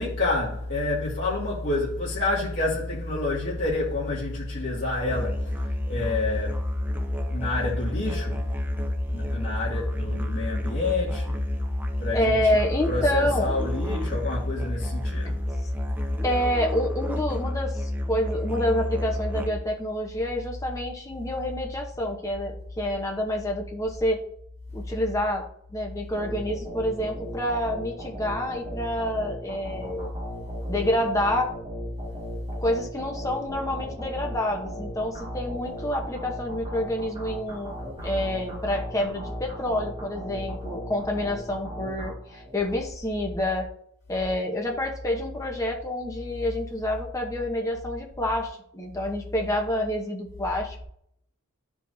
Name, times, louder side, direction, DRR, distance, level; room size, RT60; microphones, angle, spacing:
voice 1, 0.0-6.7 7.3-8.4 9.1-11.3 12.0-12.5 12.9-15.4, left 2 dB, 55° left, 2.3 m, -28 dB
Musical instrument, 5.0-19.8, left 1 dB, 10° right, 0.5 m, -30 dB
voice 2, 12.1-13.5 16.2-24.2 24.7-25.4 25.7-30.1 30.7-31.5 32.6-37.7 38.0-43.7 44.1-50.8, left 1 dB, 15° left, 1.0 m, -28 dB
sound 1, 26.1-42.8, equal, 25° right, 1.8 m, -37 dB
12.0 x 4.8 x 2.7 m
head